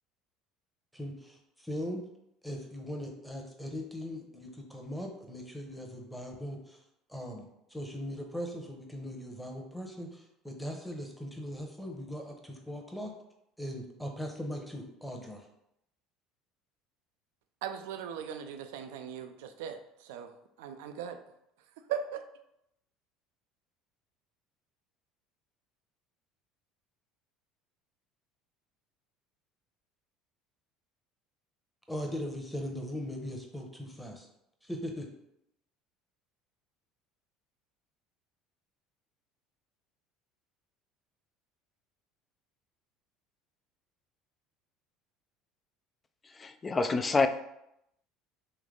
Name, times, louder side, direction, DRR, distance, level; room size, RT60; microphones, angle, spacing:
voice 1, 0.9-2.0 2.4-6.8 7.1-13.1 13.6-15.5 31.9-34.3 34.6-35.1, equal, ahead, 2 dB, 0.9 m, -39 dB
voice 2, 17.6-20.3 20.6-21.2 21.9-22.2, right 8 dB, 80° right, 7 dB, 0.4 m, -38 dB
voice 3, 46.2-47.3, left 4 dB, 25° left, 10 dB, 0.4 m, -27 dB
3.2 x 3.0 x 3.8 m, 0.80 s
hypercardioid pair, 80°, 0 cm